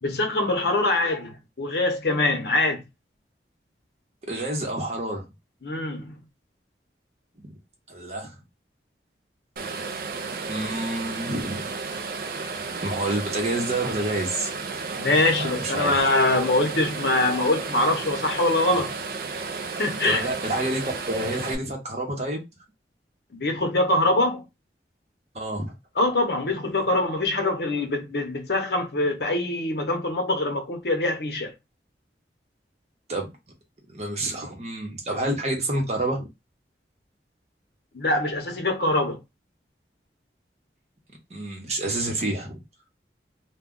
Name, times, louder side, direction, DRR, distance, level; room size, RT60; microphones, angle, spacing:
voice 1, 0.0-2.8 5.6-6.2 15.0-18.9 19.8-20.3 23.3-24.4 26.0-31.5 37.9-39.2, left 2 dB, 65° left, 0.8 m, -23 dB
voice 2, 4.3-5.3 7.4-7.6 7.9-8.4 10.5-11.7 12.8-14.5 15.4-16.1 20.0-22.4 25.3-25.7 33.1-33.3 33.9-36.3 41.3-42.6, right 1 dB, 35° right, 0.9 m, -28 dB
sound 1, 9.6-21.6, right 4 dB, 55° right, 0.4 m, -33 dB
2.2 x 2.2 x 3.6 m
head